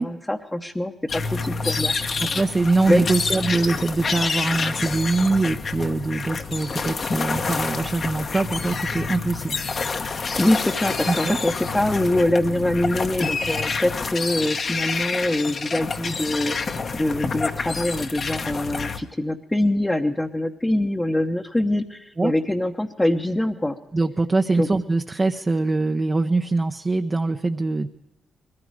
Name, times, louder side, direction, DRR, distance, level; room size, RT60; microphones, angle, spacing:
voice 1, 0.0-1.9 2.9-3.0 10.4-23.8 24.5-24.7, left 1 dB, 15° left, 0 dB, 0.9 m, -24 dB
sound 1, 1.1-19.0, left 4 dB, 50° left, 1.1 m, -28 dB
voice 2, 2.2-9.6 11.1-11.4 22.2-22.3 23.9-27.9, right 3 dB, 30° right, 5 dB, 0.7 m, -23 dB
21.0 x 14.5 x 4.8 m, 0.92 s
cardioid pair, 65°, 0 cm